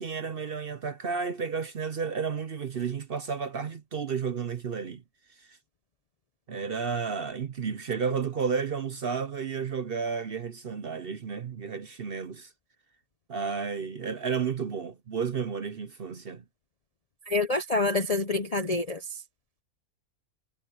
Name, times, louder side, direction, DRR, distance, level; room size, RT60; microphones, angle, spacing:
voice 1, 0.0-5.0 5.4-5.6 6.5-12.5 13.3-16.4, right 6 dB, 50° right, 0.8 m, -32 dB
voice 2, 17.3-19.2, left 2 dB, 40° left, 0.5 m, -27 dB
omnidirectional pair, 1.6 m